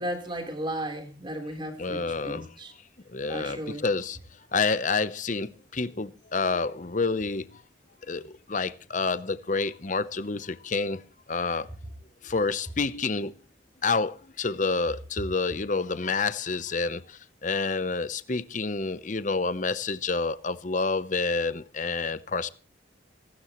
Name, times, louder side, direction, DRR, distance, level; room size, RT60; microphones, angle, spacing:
voice 1, 0.0-2.7 3.3-3.9, right 1 dB, 25° right, 3.7 m, -35 dB
voice 2, 1.8-2.5 3.1-4.2 4.5-7.4 8.1-11.0 11.3-11.7 12.2-13.3 13.8-22.5, left 4 dB, 40° left, 0.8 m, -28 dB
25.0 x 12.5 x 3.1 m
head